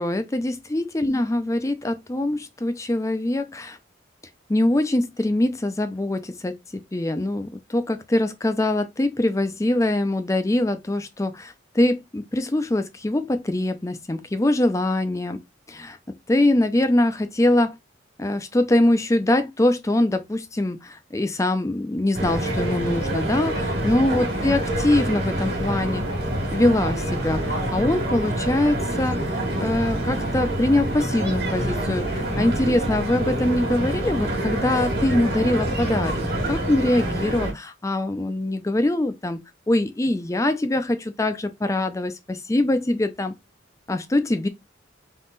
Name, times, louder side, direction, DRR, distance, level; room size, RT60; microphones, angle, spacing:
voice 1, 0.0-3.8 4.5-6.5 6.9-15.4 15.7-16.0 16.3-17.7 18.2-26.0 26.5-36.2 36.5-39.4 39.7-43.3 43.9-44.5, left 1 dB, 15° left, 0.4 m, -23 dB
sound 1, 22.1-37.5, right 1 dB, 50° right, 1.6 m, -26 dB
3.7 x 2.9 x 4.0 m
head